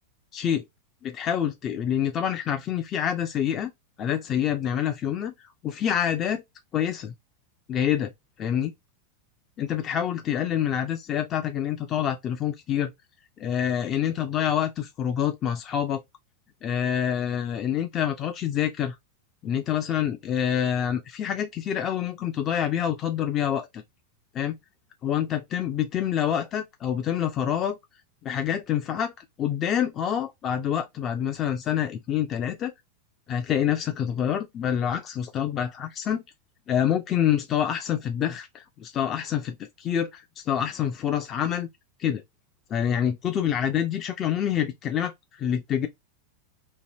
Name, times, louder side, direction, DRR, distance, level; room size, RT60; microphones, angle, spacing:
voice 1, 0.3-0.6 1.0-3.7 4.0-5.3 5.6-6.4 6.7-7.1 7.7-8.1 8.4-8.7 9.6-12.9 13.4-16.0 16.6-18.9 19.4-23.8 24.3-24.6 25.0-27.8 28.2-29.1 29.4-32.7 33.3-36.2 36.7-41.7 42.0-42.2 42.7-45.9, left 9 dB, 30° left, 0.3 m, -27 dB
2.8 x 2.6 x 2.6 m
figure-of-eight pair, 90°, 0 cm